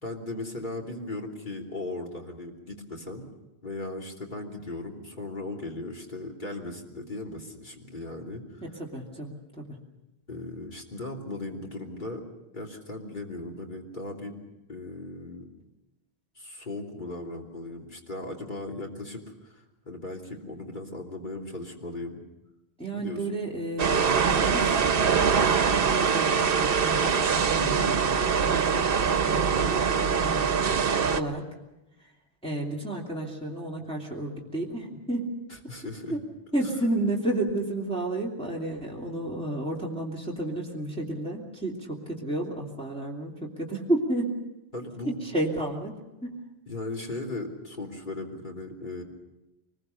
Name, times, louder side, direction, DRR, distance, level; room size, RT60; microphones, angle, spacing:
voice 1, 0.0-3.2 3.6-8.6 10.3-12.3 12.5-14.4 14.7-15.5 16.3-22.2 22.9-23.2 35.7-36.1 44.7-45.2 46.7-49.0, left 2 dB, 50° left, 0 dB, 3.2 m, -37 dB
voice 2, 8.6-9.8 22.8-30.5 31.1-31.5 32.0-32.1 32.4-35.2 35.6-35.7 36.1-36.2 36.5-44.3 45.0-46.4, right 1 dB, 5° left, -3 dB, 2.8 m, -32 dB
sound 1, 23.8-31.2, right 6 dB, 65° right, 1.1 m, -23 dB
24.0 x 21.0 x 6.7 m, 0.98 s
omnidirectional pair, 1.0 m